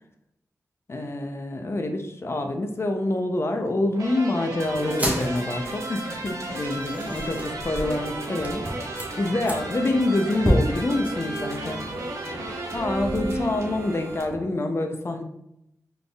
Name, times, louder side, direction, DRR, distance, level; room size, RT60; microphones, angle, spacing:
voice 1, 0.9-8.6 9.2-11.8 12.7-15.2, left 2 dB, 45° left, 5 dB, 0.5 m, -26 dB
sound 1, 3.9-13.9, right 1 dB, 80° right, 0.7 m, -34 dB
sound 2, 4.6-14.2, right 2 dB, 50° right, 0.8 m, -39 dB
sound 3, 4.9-14.4, equal, 25° right, 1.0 m, -32 dB
4.0 x 3.4 x 2.3 m, 0.79 s
cardioid pair, 55°, 6 cm